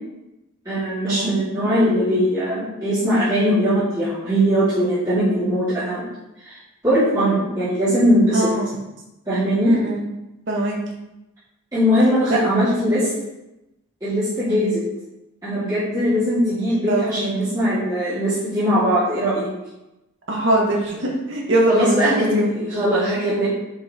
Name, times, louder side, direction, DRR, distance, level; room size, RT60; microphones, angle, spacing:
voice 1, 0.6-6.0 6.4-6.6 6.8-8.4 9.3-9.7 11.7-13.1 14.0-14.8 15.4-19.5 21.7-23.5, equal, 15° right, -15 dB, 2.9 m, -20 dB
voice 2, 8.3-8.8 9.6-10.0 10.5-10.8 12.3-12.4 16.9-17.5 20.3-22.5, right 1 dB, 60° right, -1 dB, 1.7 m, -22 dB
7.0 x 5.3 x 4.5 m, 0.96 s
head